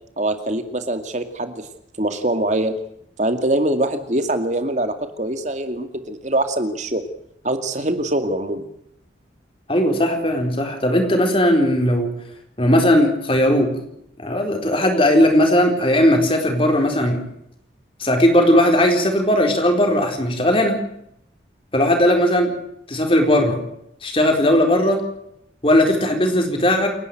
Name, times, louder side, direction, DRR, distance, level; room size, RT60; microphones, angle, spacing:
voice 1, 0.2-1.7 2.0-2.7 3.2-7.0 7.4-8.7, right 1 dB, 40° right, 8 dB, 2.3 m, -23 dB
voice 2, 9.7-12.1 12.6-13.7 14.2-17.2 18.0-20.8 21.7-22.5 22.9-23.6 24.0-25.0 25.6-26.9, left 1 dB, 30° left, 3 dB, 4.3 m, -17 dB
29.0 x 11.5 x 7.9 m, 0.76 s
head